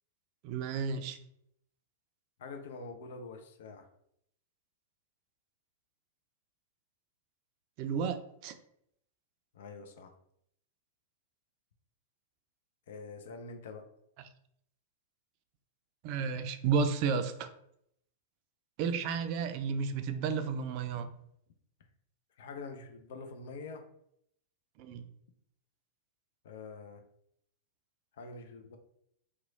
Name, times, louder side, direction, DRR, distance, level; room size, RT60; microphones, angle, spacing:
voice 1, 0.4-1.2 7.8-8.5 16.0-17.5 18.8-21.1 24.8-25.1, right 5 dB, 50° right, 9 dB, 0.4 m, -32 dB
voice 2, 2.4-3.9 9.5-10.1 12.9-13.9 22.4-23.8 26.4-27.0 28.2-28.8, left 4 dB, 65° left, 5 dB, 0.5 m, -45 dB
3.0 x 2.2 x 3.7 m, 0.73 s
hypercardioid pair, 100°, 0 cm